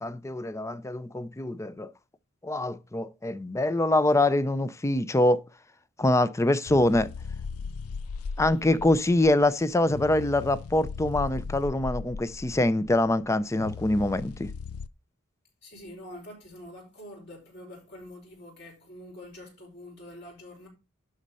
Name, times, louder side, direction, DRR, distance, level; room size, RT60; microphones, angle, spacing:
voice 1, 0.0-1.9 2.4-5.4 6.0-7.1 8.4-14.5, left 1 dB, 15° left, 0.5 m, -24 dB
sound 1, 6.7-14.9, left 5 dB, 80° left, 0.4 m, -38 dB
voice 2, 15.6-20.7, left 1 dB, 50° left, 5.1 m, -45 dB
11.5 x 4.2 x 5.4 m
head